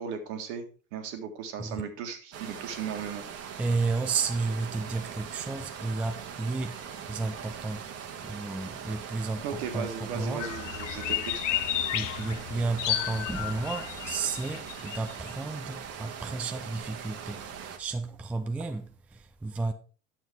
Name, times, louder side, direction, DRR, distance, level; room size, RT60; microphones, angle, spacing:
voice 1, 0.0-3.2 9.4-11.3, right 6 dB, 55° right, 1.8 m, -36 dB
sound 1, 2.3-17.8, right 7 dB, 40° right, 1.3 m, -41 dB
voice 2, 3.6-7.9 8.2-10.5 11.9-19.7, right 3 dB, 5° right, 0.4 m, -32 dB
sound 2, 10.4-15.3, left 12 dB, 65° left, 0.7 m, -32 dB
10.5 x 7.1 x 3.5 m
figure-of-eight pair, 70°, 40 cm